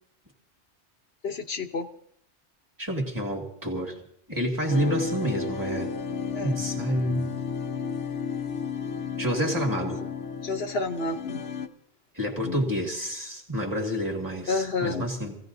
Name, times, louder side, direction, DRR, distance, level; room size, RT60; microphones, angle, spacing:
voice 1, 1.2-1.9 6.3-6.6 10.4-11.4 12.4-12.8 14.5-15.1, left 3 dB, 65° left, 1.1 m, -30 dB
voice 2, 2.8-4.0 4.3-5.9 6.4-7.3 9.2-10.0 12.1-15.4, equal, 15° right, 2.2 m, -28 dB
sound 1, 4.7-11.7, left 6 dB, 85° left, 1.1 m, -33 dB
26.0 x 16.5 x 2.6 m
omnidirectional pair, 1.2 m